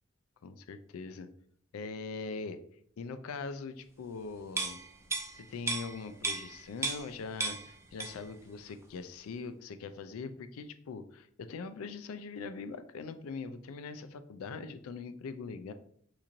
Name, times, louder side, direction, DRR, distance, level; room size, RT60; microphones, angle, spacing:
voice 1, 0.4-1.3 1.7-2.6 3.0-4.8 5.3-15.7, left 4 dB, 85° left, 11 dB, 0.4 m, -42 dB
sound 1, 4.5-7.1 7.4-8.4 8.7-8.8, right 3 dB, 15° right, 0.4 m, -35 dB
3.0 x 2.5 x 3.8 m, 0.63 s
head